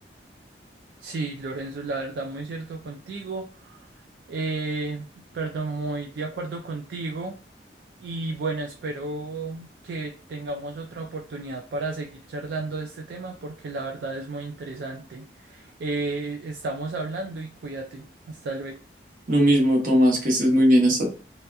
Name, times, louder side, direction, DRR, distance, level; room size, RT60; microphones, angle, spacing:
voice 1, 1.0-3.9 4.3-7.3 8.0-18.8, right 3 dB, 65° right, 3 dB, 0.3 m, -33 dB
voice 2, 19.3-21.1, equal, 50° right, 0 dB, 0.9 m, -18 dB
2.8 x 2.2 x 2.3 m, 0.40 s
head